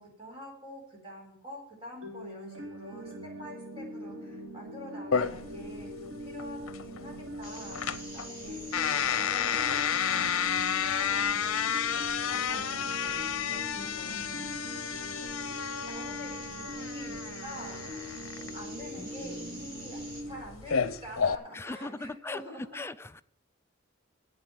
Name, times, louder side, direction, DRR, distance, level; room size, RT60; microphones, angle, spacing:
voice 1, 0.0-3.1 3.4-11.9 12.3-20.0 20.3-22.8, equal, 25° right, -2 dB, 4.5 m, -47 dB
sound 1, 2.0-20.4, equal, 80° right, 2.9 m, -42 dB
sound 2, 5.1-21.4, left 8 dB, 85° left, 0.6 m, -31 dB
sound 3, 7.4-20.2, right 1 dB, 60° right, 6.3 m, -46 dB
voice 2, 13.7-14.6 18.9-19.6 21.5-23.2, left 2 dB, 10° left, 11 dB, 0.4 m, -41 dB
8.2 x 7.7 x 8.9 m, 0.65 s
head